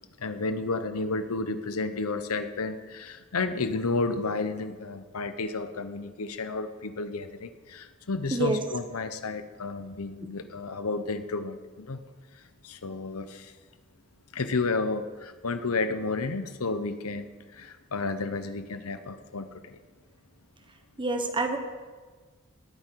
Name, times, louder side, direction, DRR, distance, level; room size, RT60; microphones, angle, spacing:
voice 1, 0.2-12.0 12.6-13.5 14.3-19.8, left 3 dB, 75° left, 10 dB, 0.9 m, -32 dB
voice 2, 8.3-8.6 21.0-21.6, right 2 dB, 20° right, 6 dB, 1.2 m, -27 dB
18.5 x 8.7 x 4.6 m, 1.4 s
head